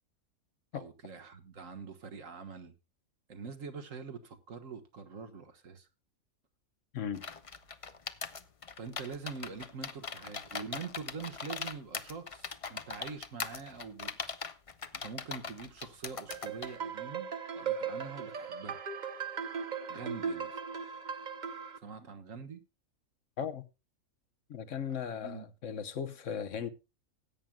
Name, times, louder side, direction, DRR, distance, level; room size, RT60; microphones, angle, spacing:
voice 1, 0.7-2.7 3.3-5.9 8.8-14.1 14.9-17.3 17.6-18.8 19.9-20.6 21.8-22.6 25.2-25.4, right 5 dB, 65° right, 1.7 m, -44 dB
sound 1, 7.1-16.8, left 5 dB, 35° left, 0.5 m, -40 dB
sound 2, 16.3-21.8, right 6 dB, 40° right, 0.7 m, -38 dB
voice 2, 24.5-26.7, left 7 dB, 60° left, 1.3 m, -37 dB
19.5 x 9.0 x 2.3 m
omnidirectional pair, 1.5 m